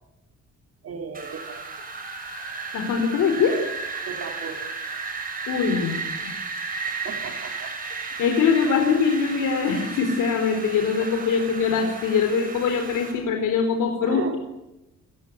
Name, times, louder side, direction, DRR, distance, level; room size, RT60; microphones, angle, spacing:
voice 1, 0.8-1.6 4.1-4.6 7.0-7.7 11.0-11.1 14.0-14.4, right 6 dB, 50° right, 5 dB, 4.1 m, -35 dB
Wind, 1.1-13.1, right 4 dB, 25° right, 6.9 m, -34 dB
voice 2, 2.7-3.6 5.5-6.0 8.2-14.4, left 6 dB, 80° left, 4 dB, 4.2 m, -22 dB
29.0 x 16.5 x 9.8 m, 0.97 s
cardioid pair, 175°, 31 cm